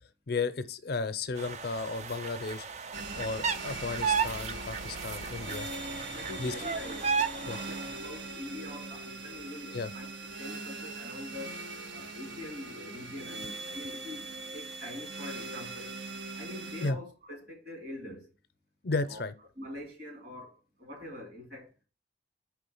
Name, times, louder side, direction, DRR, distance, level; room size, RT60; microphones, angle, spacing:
voice 1, 0.3-2.7 3.1-5.7 6.4-6.5 7.5-7.6 9.7-9.9 16.8-17.0 18.8-19.3, left 3 dB, 55° left, 0.6 m, -34 dB
sound 1, 1.4-8.0, right 6 dB, 35° right, 0.4 m, -34 dB
sound 2, 2.9-16.9, right 2 dB, 75° right, 0.9 m, -41 dB
voice 2, 6.1-10.1 10.4-11.6 11.9-15.9 16.3-18.3 19.1-19.2 19.6-21.7, left 1 dB, 55° right, 2.6 m, -44 dB
5.0 x 3.7 x 5.4 m
head